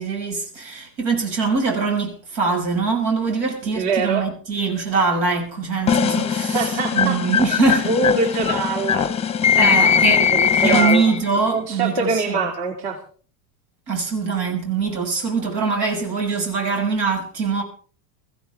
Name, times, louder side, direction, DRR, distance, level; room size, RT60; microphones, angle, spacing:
voice 1, 0.0-7.9 9.5-12.5 13.9-17.6, right 4 dB, 85° right, 6.2 m, -23 dB
voice 2, 3.8-4.2 6.5-7.2 7.8-9.1 9.5-9.9 10.3-11.0 11.4-13.0, right 4 dB, 55° right, 2.9 m, -23 dB
sound 1, 5.9-11.3, left 7 dB, 15° left, 0.7 m, -20 dB
21.5 x 15.0 x 3.4 m
supercardioid pair, 130°, 49 cm